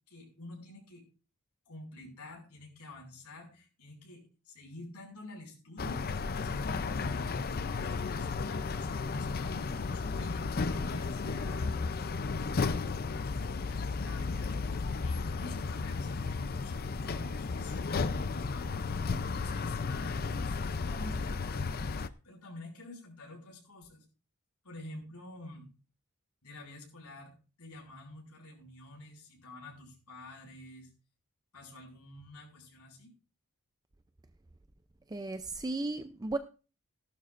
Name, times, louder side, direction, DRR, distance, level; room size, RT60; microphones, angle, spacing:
voice 1, 0.1-1.1 1.7-7.4 7.7-24.0 24.6-25.7 26.4-27.3 27.6-30.9 31.5-33.1, left 1 dB, 85° left, 1 dB, 5.9 m, -49 dB
sound 1, 5.8-22.1, left 4 dB, 45° left, 0.5 m, -34 dB
voice 2, 35.1-36.4, right 2 dB, 15° right, 9 dB, 0.5 m, -35 dB
17.5 x 11.5 x 2.5 m, 0.35 s
head